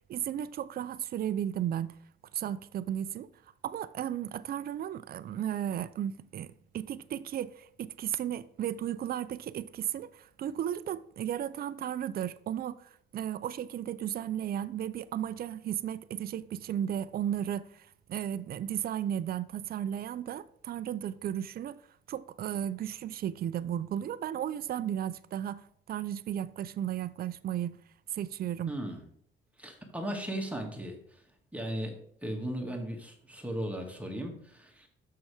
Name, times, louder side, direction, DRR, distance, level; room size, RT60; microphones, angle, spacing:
voice 1, 0.1-2.0 2.3-3.3 3.6-21.8 22.1-27.8 28.1-28.8, right 10 dB, 50° right, 0.4 m, -34 dB
voice 2, 28.7-29.0 29.6-31.2 31.5-34.9, right 1 dB, 5° right, 1.7 m, -37 dB
6.2 x 5.7 x 4.8 m
cardioid pair, 90°, 20 cm